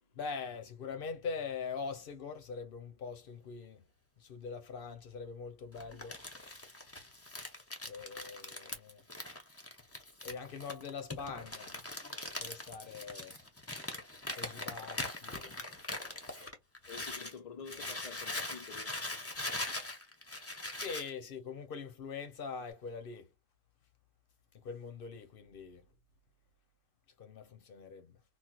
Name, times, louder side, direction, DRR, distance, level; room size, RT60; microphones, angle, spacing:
voice 1, 0.2-3.8 4.2-6.2 7.8-9.0 10.2-11.7 12.4-13.4 14.3-15.5 20.8-23.3 24.5-25.8 27.2-28.1, left 5 dB, 55° left, 0.7 m, -43 dB
Crumpling crinkling, 5.7-17.3 17.6-21.1, left 2 dB, 20° left, 0.4 m, -42 dB
voice 2, 16.9-19.0, left 6 dB, 85° left, 0.3 m, -48 dB
4.3 x 2.0 x 2.2 m
omnidirectional pair, 1.4 m